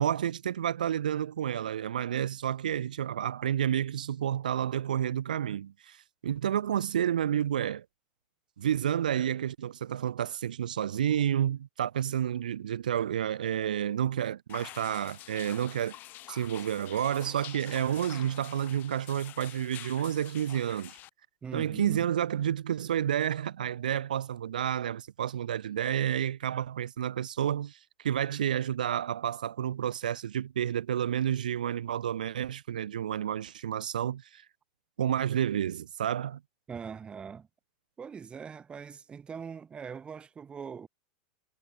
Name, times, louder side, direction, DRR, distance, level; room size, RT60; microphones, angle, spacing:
voice 1, 0.0-7.8 8.6-16.0 16.3-21.0 21.5-34.4 35.0-36.4, right 10 dB, 85° right, 1.4 m, -30 dB
sound 1, 14.5-21.1, left 15 dB, 45° left, 7.6 m, -47 dB
voice 2, 21.4-22.1 36.7-37.5 38.0-40.9, right 6 dB, 25° right, 2.6 m, -42 dB
hypercardioid pair, 100°, 4 cm